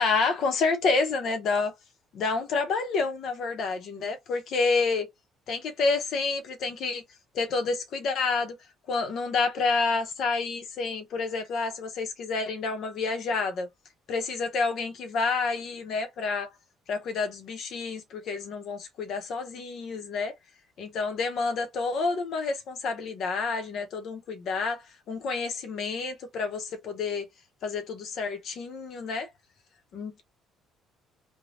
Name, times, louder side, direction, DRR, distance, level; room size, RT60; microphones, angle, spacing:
voice 1, 0.0-1.7 2.1-5.1 5.5-7.0 7.3-8.6 8.9-13.7 14.1-16.5 16.9-20.3 20.8-27.3 27.6-29.3 29.9-30.2, left 4 dB, 60° left, 0.7 m, -29 dB
3.3 x 2.2 x 2.5 m
cardioid pair, 120°, 0 cm